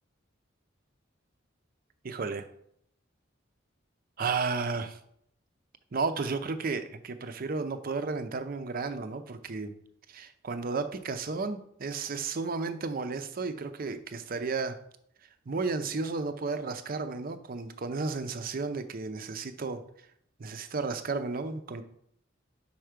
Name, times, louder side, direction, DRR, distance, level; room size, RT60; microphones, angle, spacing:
voice 1, 2.0-2.5 4.2-5.0 5.9-9.7 10.1-14.8 15.5-19.8 20.4-21.8, right 4 dB, 50° right, 9 dB, 0.6 m, -33 dB
5.6 x 4.5 x 5.0 m, 0.69 s
head